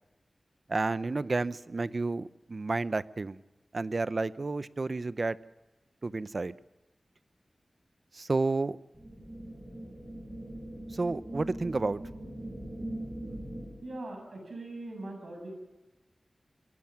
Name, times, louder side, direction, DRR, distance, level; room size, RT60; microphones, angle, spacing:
voice 1, 0.7-3.4 3.7-5.4 6.0-6.5 8.1-8.8 10.9-12.0, right 3 dB, 50° right, 0.6 m, -31 dB
sound 1, 8.9-14.0, right 1 dB, 20° right, 7.7 m, -41 dB
voice 2, 13.8-15.5, right 2 dB, 75° right, 7.3 m, -41 dB
23.0 x 17.0 x 7.4 m
wide cardioid pair, 65°, 0 cm